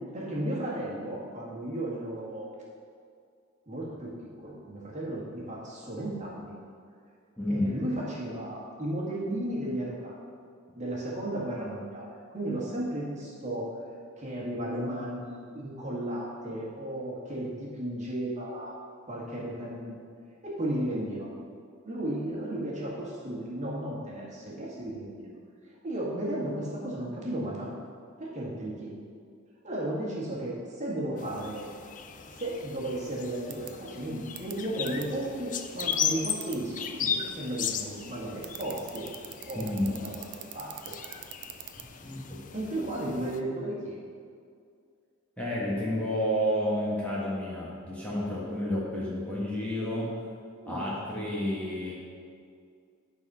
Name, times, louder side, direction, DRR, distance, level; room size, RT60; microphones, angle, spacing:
voice 1, 0.0-2.5 3.7-4.1 4.4-6.5 7.5-10.2 10.8-13.7 14.2-18.8 19.1-20.0 20.4-21.3 21.8-25.3 25.8-27.7 28.2-29.0 29.6-31.7 32.3-39.1 39.4-40.2 40.5-40.7 42.0-42.1 42.5-44.0 50.6-50.9, right 1 dB, 35° right, -5 dB, 1.9 m, -34 dB
voice 2, 7.4-7.7 39.5-39.9 42.0-42.7 45.4-50.1 50.7-51.9, equal, 5° left, -7 dB, 1.5 m, -30 dB
sound 1, 31.2-43.4, left 8 dB, 40° left, 0.5 m, -37 dB
sound 2, 33.5-33.7 34.4-34.5 34.9-35.0 35.8-36.6 38.4-41.8, right 14 dB, 55° right, 0.6 m, -40 dB
10.5 x 4.3 x 5.5 m, 2.3 s
head